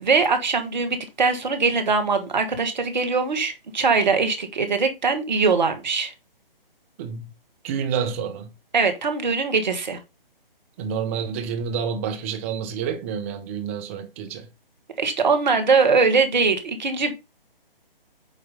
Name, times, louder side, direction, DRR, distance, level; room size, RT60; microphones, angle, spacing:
voice 1, 0.0-6.1 8.7-10.0 15.0-17.1, right 4 dB, 50° right, 1.6 m, -21 dB
voice 2, 7.6-8.5 10.8-14.5, right 7 dB, 15° right, 0.7 m, -28 dB
8.8 x 3.1 x 5.4 m
figure-of-eight pair, 140°, 29 cm